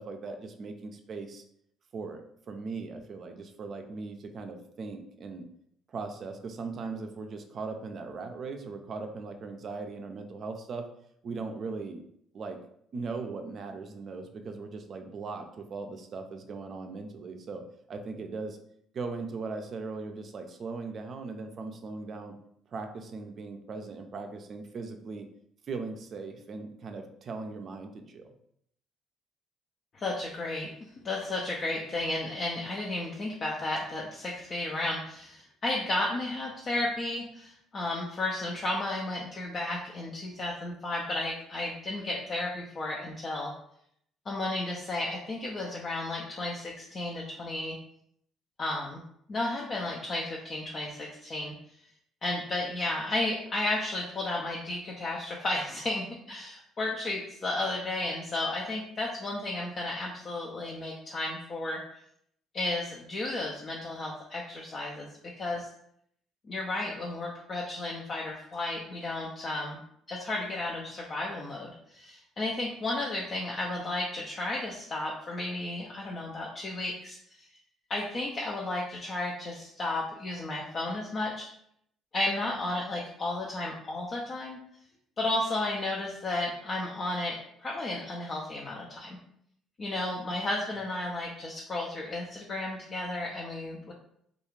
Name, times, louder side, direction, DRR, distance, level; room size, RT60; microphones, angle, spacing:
voice 1, 0.0-1.4 1.9-5.5 5.9-10.9 11.2-12.0 12.3-12.6 12.9-18.6 18.9-22.4 22.7-25.3 25.7-28.3, right 4 dB, 50° right, 5 dB, 0.4 m, -39 dB
voice 2, 29.9-43.5 44.3-47.8 48.6-49.0 49.3-51.5 52.2-61.8 62.5-65.1 65.3-65.7 66.5-69.8 70.1-77.2 77.9-81.5 82.1-84.6 85.2-89.2 89.8-93.9, left 2 dB, 45° left, -2 dB, 0.5 m, -33 dB
2.4 x 2.3 x 3.1 m, 0.70 s
supercardioid pair, 65°, 0 cm